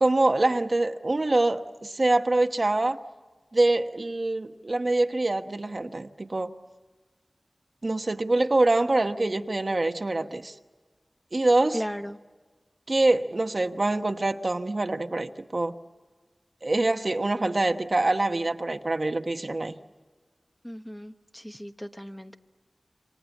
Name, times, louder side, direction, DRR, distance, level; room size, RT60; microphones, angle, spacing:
voice 1, 0.0-3.0 3.5-6.5 7.8-10.5 11.3-11.8 12.9-15.8 16.6-19.8, right 2 dB, 50° right, 7 dB, 1.2 m, -25 dB
voice 2, 11.7-12.2 20.6-22.4, equal, 5° left, 7 dB, 1.0 m, -36 dB
28.0 x 26.0 x 7.3 m, 1.4 s
wide cardioid pair, 70°, 0 cm